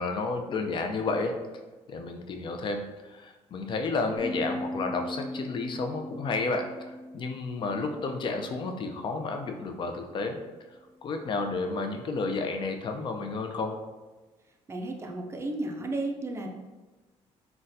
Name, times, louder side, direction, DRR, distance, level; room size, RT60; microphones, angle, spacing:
voice 1, 0.0-1.3 1.9-10.4 11.0-13.8, left 3 dB, 45° left, 5 dB, 0.4 m, -31 dB
sound 1, 4.2-9.3, left 1 dB, 15° left, 0.7 m, -39 dB
voice 2, 14.7-16.5, right 2 dB, 25° right, 2 dB, 0.5 m, -33 dB
3.9 x 2.2 x 2.6 m, 1.2 s
cardioid pair, 100°, 12 cm